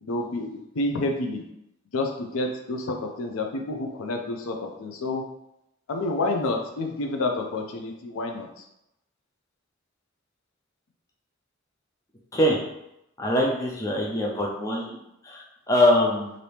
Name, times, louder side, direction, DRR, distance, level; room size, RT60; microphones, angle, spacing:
voice 1, 0.0-1.4 1.9-5.2 5.9-8.5, left 2 dB, 90° left, 4 dB, 0.5 m, -29 dB
voice 2, 13.2-16.3, left 1 dB, 15° left, -2 dB, 0.5 m, -23 dB
2.8 x 2.6 x 3.3 m, 0.84 s
head